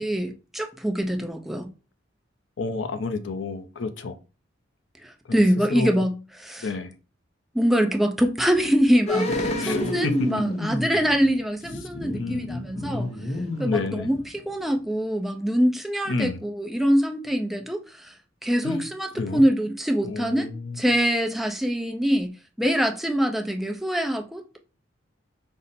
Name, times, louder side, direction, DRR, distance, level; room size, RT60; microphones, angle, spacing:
voice 1, 0.0-1.7 5.0-6.7 7.5-13.1 13.6-18.1 18.4-20.5 20.8-24.6, equal, ahead, 0.4 m, -24 dB
voice 2, 2.6-4.2 5.3-5.4 5.7-6.1 6.6-6.9 9.6-10.3 12.1-13.2 13.6-14.1 16.1-16.4 18.6-18.9 19.2-19.4 20.0-20.8, left 3 dB, 70° left, 0.5 m, -30 dB
sound 1, 9.1-14.5 14.8-14.9, left 1 dB, 35° left, 0.7 m, -29 dB
5.3 x 2.0 x 4.1 m
head